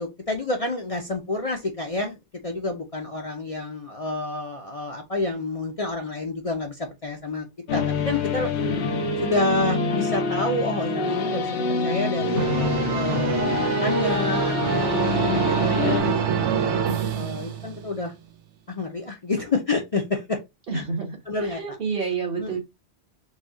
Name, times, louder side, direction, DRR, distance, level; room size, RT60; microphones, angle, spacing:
voice 1, 0.0-2.2 2.4-7.5 7.7-8.5 9.2-12.5 12.9-16.6 17.2-18.1 18.7-20.4 20.7-20.8 21.3-21.8 22.4-22.6, left 2 dB, 40° left, 0.6 m, -29 dB
sound 1, 7.7-16.0, left 3 dB, 75° left, 1.1 m, -26 dB
sound 2, 12.4-18.0, right 7 dB, 85° right, 0.9 m, -26 dB
voice 2, 20.7-22.6, right 5 dB, 55° right, 1.5 m, -29 dB
4.1 x 2.4 x 3.6 m
omnidirectional pair, 1.2 m